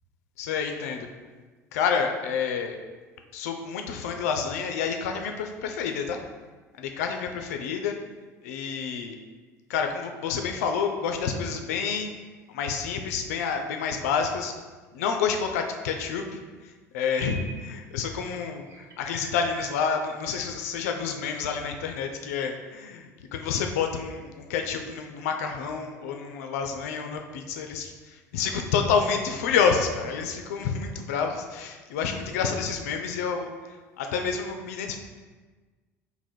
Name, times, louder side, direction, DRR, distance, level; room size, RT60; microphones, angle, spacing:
voice 1, 0.4-1.1 1.7-2.8 3.3-6.2 6.8-7.9 8.4-9.2 9.7-12.1 12.5-14.5 14.9-16.2 16.6-33.5 34.0-35.0, left 6 dB, 65° left, 4 dB, 0.3 m, -29 dB
sound 1, 17.1-17.6 18.0-20.0, right 4 dB, 35° right, 0.6 m, -43 dB
3.4 x 2.1 x 4.2 m, 1.3 s
figure-of-eight pair, 65°, 9 cm